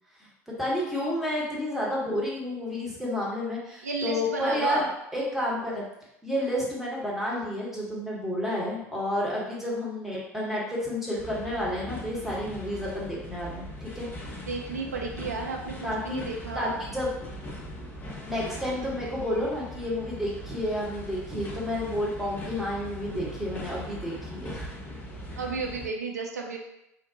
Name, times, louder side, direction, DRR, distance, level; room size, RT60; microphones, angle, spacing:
voice 1, 0.2-5.8 6.2-14.1 15.8-16.2 16.5-17.1 18.3-24.7 25.3-25.4, left 1 dB, 5° right, -6 dB, 1.1 m, -30 dB
voice 2, 3.8-4.8 14.5-16.8 23.1-23.2 25.4-26.6, right 4 dB, 75° right, 1 dB, 0.4 m, -33 dB
sound 1, 11.2-25.9, equal, 20° left, 0.7 m, -40 dB
3.6 x 2.2 x 2.7 m, 0.84 s
figure-of-eight pair, 70°, 9 cm